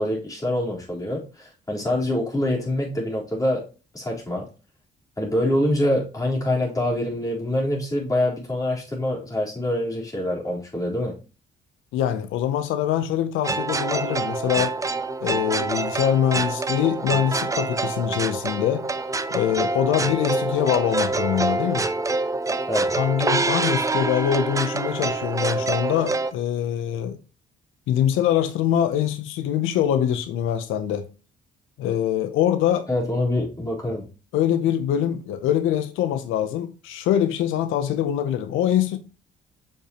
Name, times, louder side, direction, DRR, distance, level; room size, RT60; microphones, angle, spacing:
voice 1, 0.0-3.6 3.9-4.4 5.2-11.1 22.7-22.9 32.9-34.0, left 1 dB, 15° left, 3.7 m, -25 dB
voice 2, 11.9-14.8 15.2-18.9 19.3-21.9 23.0-27.2 27.9-31.1 31.8-32.9 34.3-39.0, left 10 dB, 90° left, 0.6 m, -23 dB
sound 1, 13.4-26.3, right 3 dB, 15° right, 0.5 m, -26 dB
6.7 x 5.5 x 2.9 m
cardioid pair, 90°, 20 cm